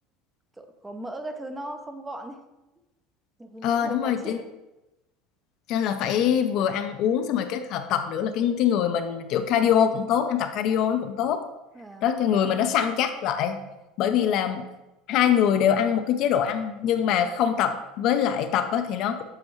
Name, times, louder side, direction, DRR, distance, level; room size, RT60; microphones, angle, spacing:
voice 1, 0.6-2.4 3.4-4.5 11.7-12.1, right 1 dB, 10° right, 6 dB, 0.5 m, -38 dB
voice 2, 3.6-4.4 5.7-11.4 12.0-13.6 14.0-14.6 15.1-19.2, left 9 dB, 55° left, 8 dB, 0.5 m, -24 dB
7.7 x 4.6 x 3.1 m, 0.99 s
supercardioid pair, 140°, 0 cm